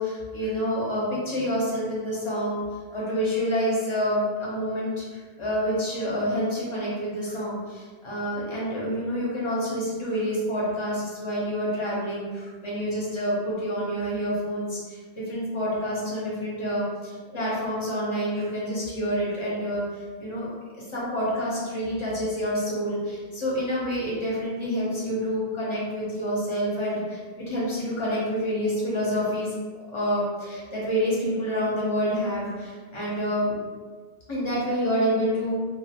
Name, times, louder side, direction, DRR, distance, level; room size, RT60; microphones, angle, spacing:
voice 1, 0.0-2.6 2.9-20.5 20.7-27.2 27.5-29.6 29.9-33.5 33.8-33.9 34.3-35.5, equal, 35° left, -7 dB, 0.7 m, -28 dB
2.6 x 2.0 x 2.8 m, 1.5 s
omnidirectional pair, 1.0 m